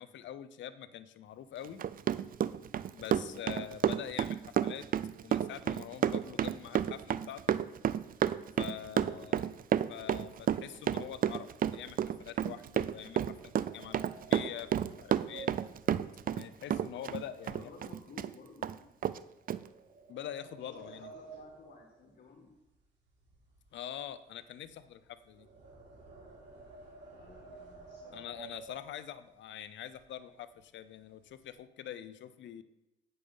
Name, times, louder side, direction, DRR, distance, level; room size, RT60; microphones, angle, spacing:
voice 1, 0.0-1.9 2.9-4.9 5.2-7.6 8.6-9.4 9.9-15.6 16.3-17.7 20.1-21.1 23.7-25.5 28.1-32.6, left 10 dB, 70° left, 13 dB, 0.7 m, -45 dB
Run, 1.6-16.5 16.7-18.3 18.6-18.7 19.0-19.2 19.5-19.6, right 10 dB, 45° right, 0.4 m, -30 dB
voice 2, 3.0-3.5 5.8-5.9 8.9-9.4 17.5-18.9 20.6-22.6 27.1-28.4, left 3 dB, 50° left, 2 dB, 1.6 m, -55 dB
sound 1, 12.3-17.4 17.7-18.0 18.5-18.6 19.4-22.8 23.0-29.3 29.9-30.0 30.3-30.5 30.9-31.5, right 4 dB, 65° right, 3.4 m, -53 dB
8.7 x 6.8 x 5.4 m, 0.94 s
cardioid pair, 90°, 20 cm